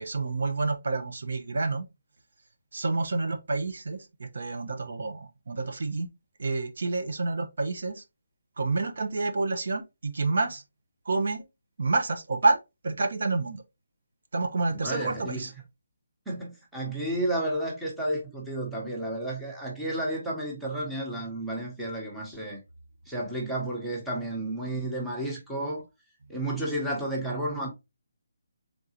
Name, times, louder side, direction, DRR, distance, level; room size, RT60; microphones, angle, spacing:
voice 1, 0.0-1.8 2.7-6.1 6.4-8.0 8.6-10.6 11.1-11.4 11.8-12.6 12.8-13.6 14.3-15.5, right 3 dB, 60° right, 0.7 m, -28 dB
voice 2, 14.7-15.5 16.3-22.6 23.1-25.8 26.3-27.7, right 1 dB, ahead, 0.9 m, -32 dB
3.8 x 3.7 x 2.8 m
hypercardioid pair, 170°, 0 cm